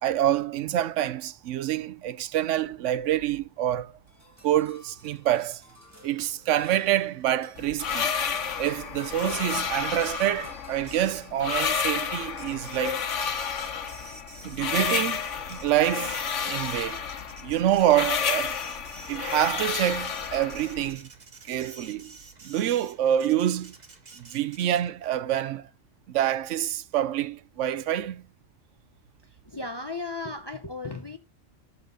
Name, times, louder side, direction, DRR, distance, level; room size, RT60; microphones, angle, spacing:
voice 1, 0.0-3.9 4.4-5.6 6.0-8.1 8.6-13.0 14.4-17.0 17.4-18.6 19.1-21.1 21.5-22.2 22.4-23.7 24.2-25.7 26.1-28.3, right 12 dB, 80° right, 0.9 m, -26 dB
sound 1, 4.1-11.8, equal, 15° right, 1.3 m, -52 dB
sound 2, 7.6-20.9, left 7 dB, 80° left, 1.3 m, -31 dB
Printer, 9.0-25.1, right 3 dB, 40° right, 1.2 m, -50 dB
voice 2, 29.2-31.2, left 3 dB, 30° left, 0.5 m, -35 dB
12.0 x 4.1 x 5.0 m
omnidirectional pair, 1.2 m